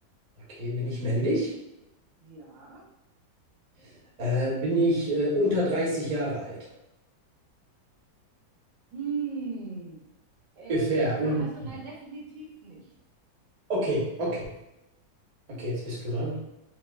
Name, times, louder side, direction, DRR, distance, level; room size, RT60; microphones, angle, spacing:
voice 1, 0.5-1.5 4.2-6.6 10.7-11.4 13.7-14.4 15.5-16.4, equal, 30° right, -6 dB, 0.7 m, -27 dB
voice 2, 2.2-2.9 8.9-10.0 10.6-12.9, right 5 dB, 90° right, -3 dB, 1.6 m, -38 dB
4.5 x 2.2 x 2.3 m, 0.91 s
omnidirectional pair, 1.9 m